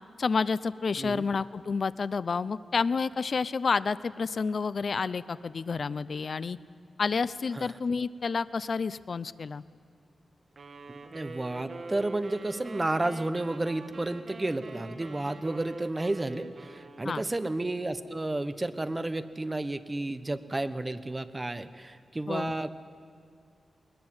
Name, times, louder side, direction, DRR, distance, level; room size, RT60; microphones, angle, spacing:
voice 1, 0.2-6.6 7.0-9.6 17.0-17.2 22.3-22.5, left 5 dB, 50° left, 16 dB, 0.5 m, -29 dB
sound 1, 10.6-17.5, right 3 dB, 45° right, 1.8 m, -44 dB
voice 2, 10.9-22.7, right 2 dB, 20° right, 12 dB, 0.9 m, -32 dB
20.5 x 20.0 x 9.7 m, 2.2 s
wide cardioid pair, 130°, 0 cm